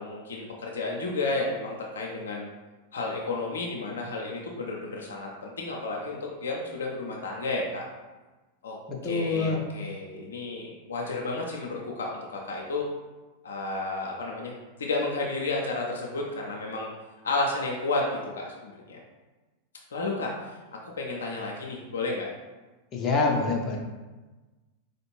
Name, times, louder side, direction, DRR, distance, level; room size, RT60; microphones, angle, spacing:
voice 1, 0.0-2.5 2.9-7.8 8.6-8.8 9.0-12.9 13.4-16.9 17.2-19.0 19.9-22.3, left 2 dB, 65° left, -1 dB, 0.5 m, -32 dB
voice 2, 8.9-9.6 22.9-23.8, left 3 dB, 30° left, 0 dB, 0.7 m, -26 dB
4.3 x 2.5 x 3.1 m, 1.2 s
figure-of-eight pair, 90°, 0 cm